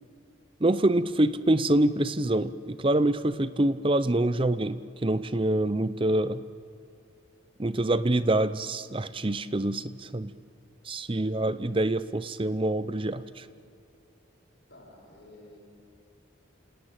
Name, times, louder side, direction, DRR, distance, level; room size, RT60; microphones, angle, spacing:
voice 1, 0.6-6.4 7.6-10.3 10.9-13.5, right 1 dB, 25° right, 14 dB, 0.6 m, -26 dB
voice 2, 14.7-15.6, left 1 dB, 50° left, -1 dB, 7.3 m, -52 dB
28.5 x 18.0 x 9.0 m, 2.8 s
head